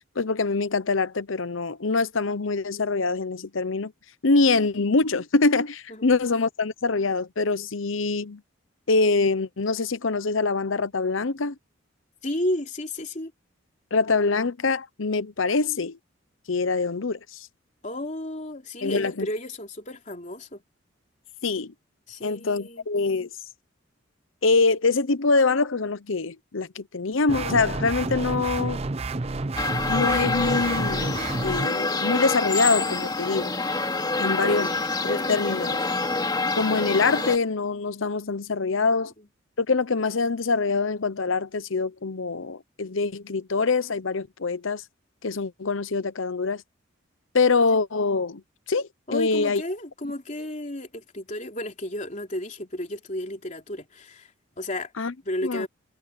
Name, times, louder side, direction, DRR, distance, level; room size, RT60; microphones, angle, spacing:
voice 1, 0.2-3.9 4.2-8.4 8.9-11.5 13.9-16.0 16.5-17.5 18.8-19.3 21.4-21.7 22.2-23.3 24.4-28.8 29.9-33.5 34.2-34.7 35.0-35.8 36.6-39.1 39.6-44.8 45.2-46.6 47.3-48.4 48.7-49.6 55.0-55.1 55.4-55.7, left 3 dB, 75° left, 0.9 m, -24 dB
voice 2, 12.2-13.3 17.8-20.6 22.1-22.8 34.2-34.8 39.2-39.3 49.1-54.9 55.2-55.7, left 1 dB, 35° left, 3.4 m, -33 dB
sound 1, 27.3-31.7, right 3 dB, 30° right, 0.6 m, -30 dB
sound 2, 29.6-37.4, left 3 dB, 20° left, 2.5 m, -26 dB
head